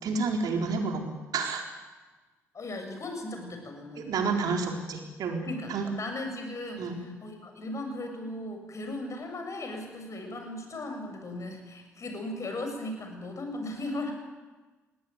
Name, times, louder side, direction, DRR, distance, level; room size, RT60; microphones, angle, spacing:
voice 1, 0.0-1.6 4.0-5.9 6.8-7.0, right 4 dB, 60° right, 3 dB, 4.3 m, -30 dB
voice 2, 2.5-4.1 5.4-14.1, left 1 dB, 45° left, 4 dB, 7.0 m, -37 dB
19.5 x 19.0 x 9.6 m, 1.3 s
hypercardioid pair, 45°, 7 cm